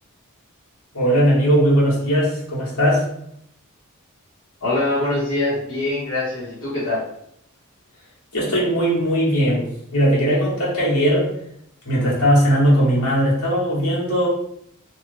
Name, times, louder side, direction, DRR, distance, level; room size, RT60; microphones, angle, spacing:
voice 1, 0.9-3.0 8.3-9.7 9.9-11.3 11.8-14.3, equal, 75° left, -7 dB, 1.5 m, -18 dB
voice 2, 4.6-7.0, left 2 dB, 60° left, -10 dB, 1.2 m, -23 dB
3.1 x 2.4 x 3.3 m, 0.72 s
head